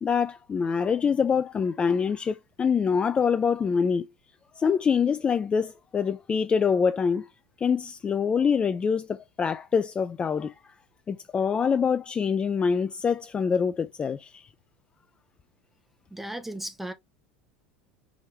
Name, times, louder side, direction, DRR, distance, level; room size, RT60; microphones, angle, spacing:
voice 1, 0.0-4.1 4.6-7.3 7.6-10.7 11.1-14.5, left 6 dB, 20° left, 0.4 m, -25 dB
voice 2, 16.1-16.9, right 1 dB, 5° right, 0.7 m, -35 dB
4.9 x 3.1 x 3.0 m
figure-of-eight pair, 75°, 5 cm